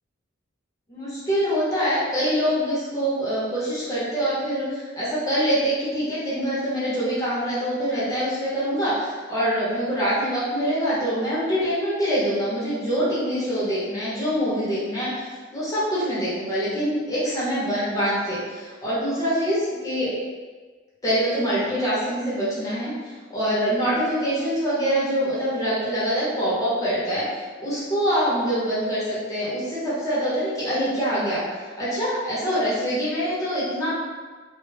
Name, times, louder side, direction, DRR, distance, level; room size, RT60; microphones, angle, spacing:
voice 1, 0.9-20.1 21.0-27.2 27.6-33.9, equal, 20° left, -9 dB, 0.8 m, -25 dB
2.3 x 2.1 x 3.2 m, 1.4 s
head